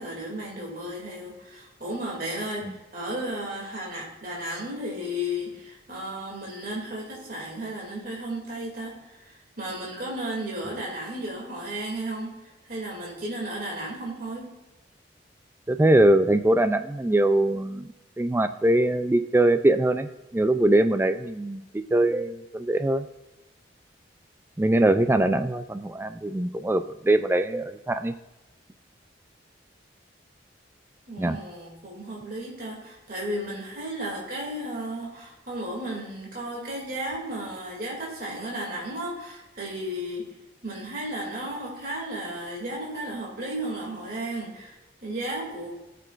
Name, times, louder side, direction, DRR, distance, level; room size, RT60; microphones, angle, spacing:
voice 1, 0.0-12.4 12.6-14.5 31.1-40.3 40.6-45.7, right 1 dB, 50° right, -3 dB, 2.4 m, -34 dB
voice 2, 15.7-23.1 24.6-28.1 31.2-31.4, right 1 dB, 10° right, 10 dB, 0.3 m, -22 dB
16.5 x 6.8 x 2.5 m, 1.0 s
head